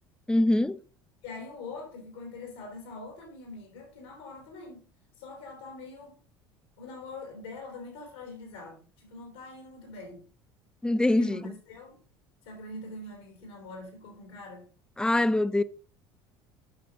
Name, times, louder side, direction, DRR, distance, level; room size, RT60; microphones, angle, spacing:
voice 1, 0.3-0.8 10.8-11.5 15.0-15.6, left 1 dB, 5° left, 0.7 m, -24 dB
voice 2, 1.2-4.9 5.2-6.2 6.8-10.2 11.2-12.0 12.4-14.6, left 3 dB, 85° left, 3.2 m, -43 dB
8.7 x 5.9 x 5.2 m
hypercardioid pair, 70°, 12 cm